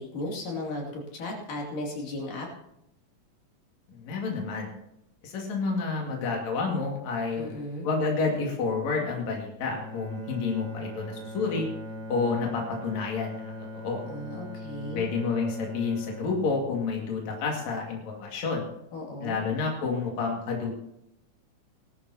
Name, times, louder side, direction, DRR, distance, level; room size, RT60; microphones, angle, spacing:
voice 1, 0.0-2.5 7.4-7.9 14.1-15.1 18.9-19.4, left 1 dB, 75° left, -1 dB, 4.3 m, -35 dB
voice 2, 3.9-4.7 5.2-7.5 7.8-11.7 12.1-13.5 13.8-14.0 14.9-18.6 19.2-20.7, left 4 dB, 55° left, 0 dB, 3.3 m, -29 dB
Bowed string instrument, 9.6-17.8, left 1 dB, 25° left, 3.9 m, -40 dB
19.0 x 12.5 x 2.9 m, 0.80 s
omnidirectional pair, 3.9 m